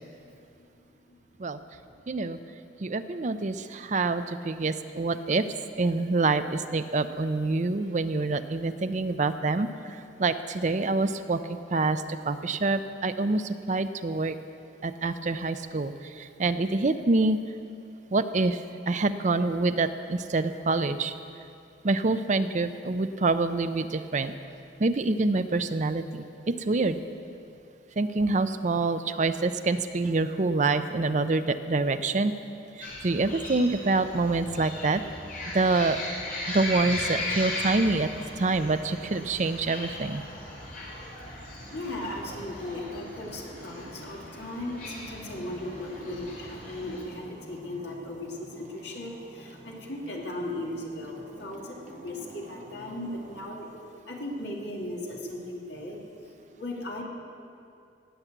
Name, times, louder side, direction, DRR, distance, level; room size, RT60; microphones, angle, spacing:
voice 1, 2.1-2.4 2.8-5.5 5.8-11.4 11.7-14.4 14.8-17.4 18.1-21.1 21.8-24.3 24.8-27.0 28.0-32.3 32.8-35.0 35.5-36.0 36.5-38.1 38.4-40.2 46.1-46.2, right 3 dB, 40° right, 10 dB, 0.5 m, -26 dB
sound 1, 32.8-47.0, left 1 dB, 50° left, 4.0 m, -37 dB
sound 2, 39.7-53.4, right 1 dB, 55° right, 3.2 m, -48 dB
voice 2, 41.7-53.7 54.0-56.3 56.6-57.0, left 1 dB, 65° left, -2 dB, 2.5 m, -37 dB
18.5 x 7.3 x 8.0 m, 2.5 s
head